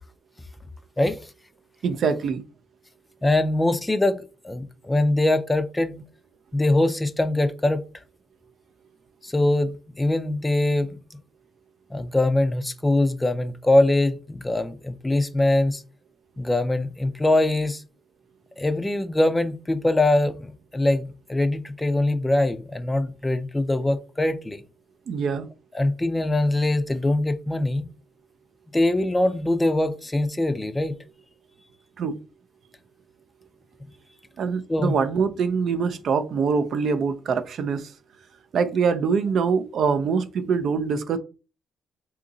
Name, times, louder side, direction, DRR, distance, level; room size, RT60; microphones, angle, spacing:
voice 1, 1.8-2.4 25.1-25.5 32.0-32.2 34.4-37.8 38.5-41.2, right 5 dB, 65° right, 0.4 m, -24 dB
voice 2, 3.2-6.0 6.5-7.8 9.2-11.2 11.9-15.8 16.4-17.8 18.6-24.6 25.7-27.9 28.7-30.9 34.7-34.9, left 1 dB, 15° left, 0.4 m, -23 dB
2.8 x 2.5 x 3.8 m
cardioid pair, 90°, 0 cm